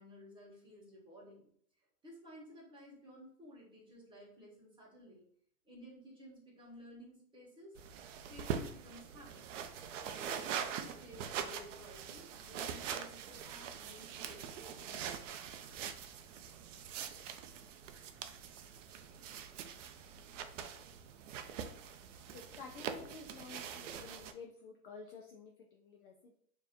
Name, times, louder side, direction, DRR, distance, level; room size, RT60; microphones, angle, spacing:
voice 1, 0.0-1.5 2.0-5.2 5.6-7.8 8.3-9.4 10.0-15.4, equal, 10° right, -4 dB, 1.3 m, -55 dB
sound 1, 7.8-24.3, right 8 dB, 50° right, 0.5 m, -43 dB
voice 2, 22.3-26.4, left 4 dB, 35° left, 2 dB, 0.4 m, -51 dB
4.5 x 2.9 x 2.5 m, 0.62 s
hypercardioid pair, 125°, 49 cm